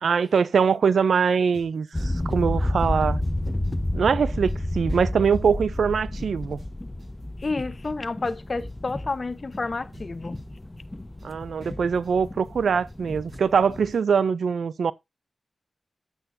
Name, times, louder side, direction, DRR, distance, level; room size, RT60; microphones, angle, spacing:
voice 1, 0.0-3.2 3.9-6.6 11.2-14.9, right 6 dB, 85° right, 0.4 m, -23 dB
sound 1, 0.7-14.1, right 2 dB, 65° right, 7.0 m, -53 dB
sound 2, 1.9-13.9, left 1 dB, 25° left, 1.1 m, -31 dB
voice 2, 7.4-10.4, left 3 dB, 50° left, 0.9 m, -30 dB
10.0 x 8.7 x 2.6 m
cardioid pair, 45°, 0 cm